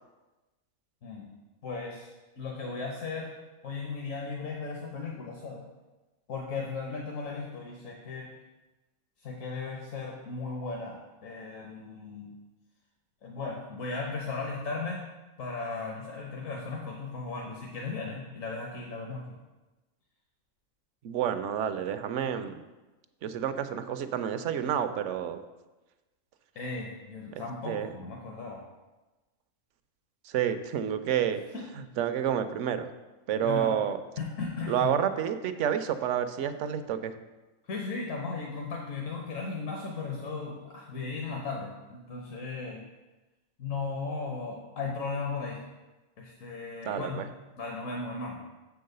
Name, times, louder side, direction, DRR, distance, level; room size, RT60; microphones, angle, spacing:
voice 1, 1.6-2.1 2.4-3.3 3.6-5.7 6.3-8.3 9.2-11.0 11.2-12.3 13.2-15.0 15.4-19.3 26.5-28.6 31.5-31.6 33.4-33.7 34.2-35.0 37.7-42.9 43.6-45.6 46.2-47.3 47.6-48.4, left 4 dB, 70° left, -1 dB, 1.3 m, -36 dB
voice 2, 21.0-22.5 23.2-25.4 27.3-27.9 30.2-31.4 31.8-32.9 33.3-34.0 34.7-37.1 46.8-47.3, right 9 dB, 70° right, 10 dB, 0.8 m, -29 dB
7.1 x 4.7 x 6.6 m, 1.1 s
omnidirectional pair, 1.4 m